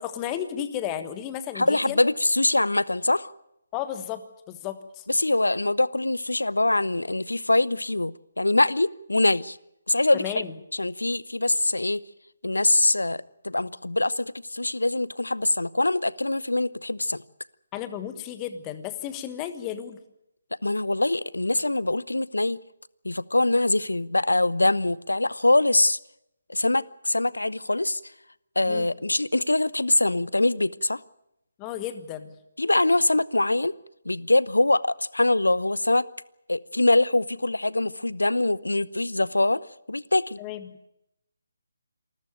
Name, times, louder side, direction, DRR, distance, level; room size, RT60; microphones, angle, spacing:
voice 1, 0.0-2.0 3.7-5.0 10.2-10.5 17.7-20.0 28.7-28.9 31.6-32.4 40.4-40.7, left 10 dB, 20° left, 11 dB, 1.4 m, -33 dB
voice 2, 1.5-3.3 5.1-9.6 9.9-10.3 10.7-12.0 12.4-17.2 20.6-22.6 23.0-26.0 26.5-28.0 28.6-31.0 32.6-33.7 34.0-36.1 36.5-40.4, left 2 dB, 75° left, 21 dB, 0.8 m, -23 dB
27.0 x 14.0 x 9.2 m, 0.82 s
figure-of-eight pair, 145°, 0 cm